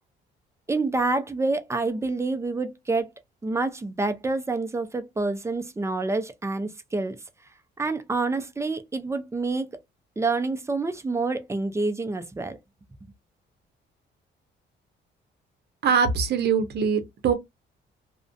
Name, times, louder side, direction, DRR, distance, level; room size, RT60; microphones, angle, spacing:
voice 1, 0.7-3.1 3.4-7.2 7.8-9.7 10.2-12.6, right 3 dB, 15° right, 0.5 m, -27 dB
voice 2, 15.8-17.3, right 6 dB, 55° right, 0.7 m, -22 dB
2.4 x 2.1 x 2.5 m
cardioid pair, 90°, 20 cm